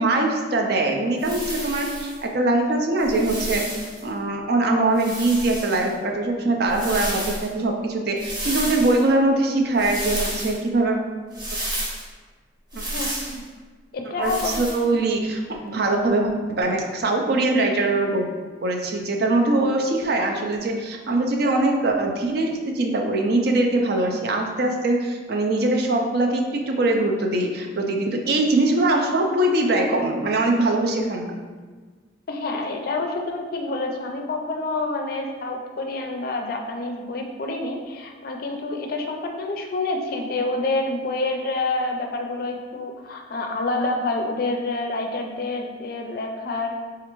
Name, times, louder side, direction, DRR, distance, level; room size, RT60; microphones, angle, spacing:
voice 1, 0.0-3.6 4.0-11.0 14.2-16.3 16.6-18.3 18.6-31.3, right 2 dB, 60° right, 2 dB, 0.4 m, -22 dB
sound 1, 1.2-2.2 3.0-4.0 4.9-5.9 6.7-7.5 8.2-9.0 9.8-10.6 11.3-12.0 12.7-13.4 14.2-14.8, right 1 dB, 25° right, 0.8 m, -31 dB
voice 2, 12.9-13.4 13.9-14.5 32.3-46.7, left 2 dB, 55° left, 3 dB, 0.4 m, -28 dB
4.3 x 2.4 x 3.0 m, 1.4 s
head